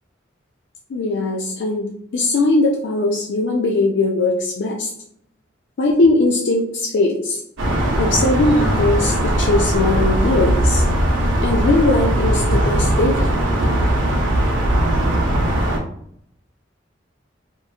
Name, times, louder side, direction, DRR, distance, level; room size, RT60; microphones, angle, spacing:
voice 1, 0.9-4.9 5.8-7.4 8.0-10.8 11.4-13.3, left 2 dB, 65° left, -1 dB, 0.4 m, -19 dB
sound 1, 7.6-15.8, right 1 dB, 80° right, 0.6 m, -19 dB
3.0 x 2.2 x 2.4 m, 0.70 s
head